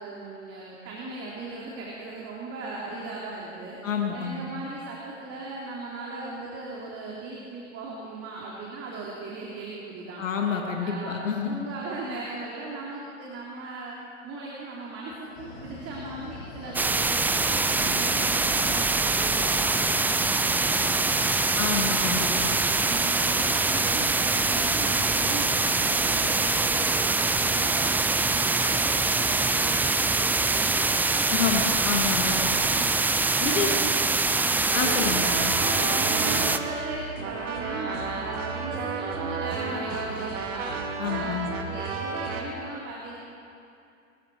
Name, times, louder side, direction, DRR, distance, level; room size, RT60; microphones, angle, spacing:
voice 1, 0.0-3.8 4.1-10.2 10.8-14.0 14.2-21.5 22.0-31.7 32.3-34.0 34.2-35.2 35.7-40.7 41.0-43.2, right 3 dB, 40° right, -4 dB, 3.0 m, -38 dB
voice 2, 3.8-4.4 10.2-11.7 21.6-22.3 31.3-32.4 33.4-33.7 34.7-35.3 41.0-41.5, left 6 dB, 85° left, 1 dB, 2.1 m, -28 dB
sound 1, 15.3-26.7, left 2 dB, 60° left, 5.1 m, -43 dB
sound 2, 16.7-36.6, right 3 dB, 5° right, 0.3 m, -24 dB
sound 3, 34.5-42.4, right 4 dB, 80° right, 2.2 m, -32 dB
22.0 x 14.5 x 4.6 m, 2.6 s
hypercardioid pair, 105°, 37 cm